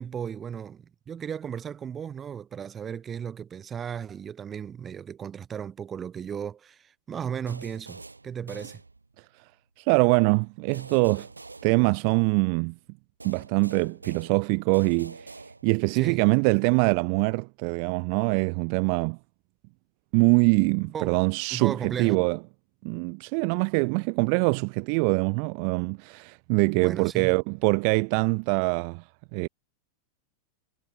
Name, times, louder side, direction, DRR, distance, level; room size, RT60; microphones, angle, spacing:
voice 1, 0.0-8.8 15.9-16.2 20.8-21.2 21.5-22.3 26.7-27.4, right 8 dB, 20° right, 1.0 m, -35 dB
sound 1, 7.5-9.4 10.7-12.5 13.2-16.0, right 3 dB, 80° right, 1.9 m, -46 dB
voice 2, 9.8-11.3 11.6-12.7 13.2-15.3 15.6-19.2 20.1-22.4 22.8-29.0 29.3-29.5, right 40 dB or more, 45° right, 0.7 m, -24 dB
figure-of-eight pair, 90°, 0 cm